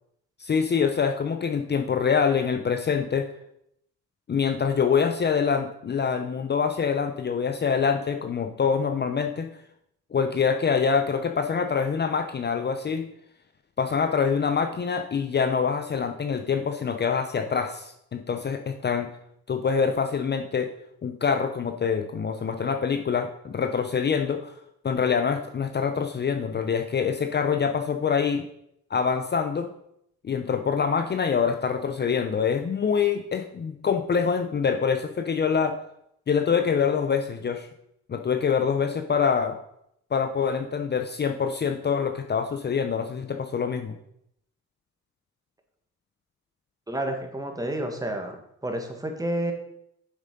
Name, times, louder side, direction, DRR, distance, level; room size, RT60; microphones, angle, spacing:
voice 1, 0.4-3.3 4.3-9.5 10.1-13.1 13.8-19.1 19.5-20.7 21.0-24.5 24.8-28.4 28.9-29.7 30.2-35.8 36.3-37.7 38.1-39.6 40.1-43.9, left 6 dB, 35° left, 6 dB, 0.7 m, -25 dB
voice 2, 46.9-49.5, right 1 dB, 10° right, 4 dB, 1.7 m, -30 dB
7.4 x 6.2 x 5.3 m, 0.76 s
cardioid pair, 90°, 30 cm